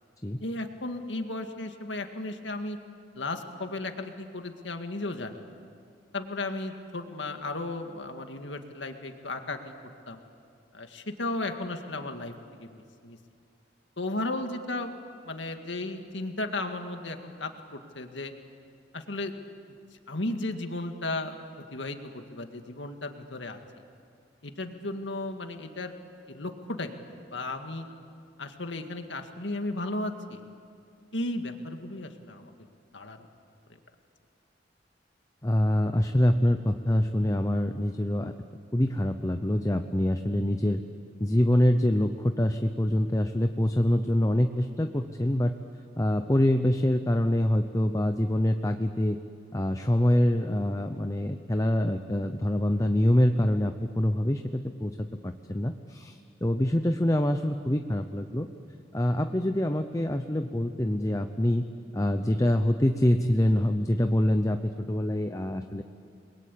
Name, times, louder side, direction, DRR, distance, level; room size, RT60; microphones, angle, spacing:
voice 1, 0.4-2.8 3.1-5.4 6.1-9.7 10.1-10.2 10.7-13.2 14.0-14.9 15.2-18.3 18.9-19.3 20.1-21.3 21.7-23.6 24.4-26.0 26.3-27.9 28.4-30.4 31.1-32.5 32.9-33.3, left 2 dB, 85° left, 5 dB, 2.0 m, -35 dB
voice 2, 35.4-38.3 38.7-40.8 41.2-45.5 46.0-49.2 49.5-58.5 58.9-61.7 61.9-65.8, left 1 dB, 20° left, 7 dB, 0.8 m, -25 dB
29.5 x 22.0 x 8.5 m, 2.3 s
head